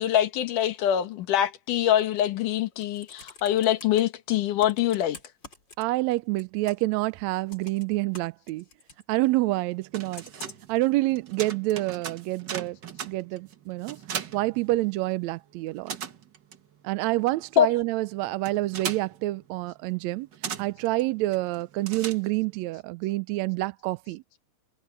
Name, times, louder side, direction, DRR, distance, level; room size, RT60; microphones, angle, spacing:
voice 1, 0.0-5.2 17.6-17.7, left 11 dB, 80° left, 3.0 m, -24 dB
Computer keyboard, 2.6-4.0 4.6-6.1 6.4-7.0 7.5-9.0 10.2-10.8 11.5-11.6, left 3 dB, 35° left, 4.8 m, -47 dB
voice 2, 5.8-8.6 9.1-10.2 10.7-12.8 13.0-14.0 14.3-16.0 16.8-20.3 20.6-24.2, right 19 dB, 80° right, 1.7 m, -27 dB
sound 1, 9.7-15.3 15.5-22.6, right 7 dB, 50° right, 1.4 m, -39 dB
omnidirectional pair, 3.6 m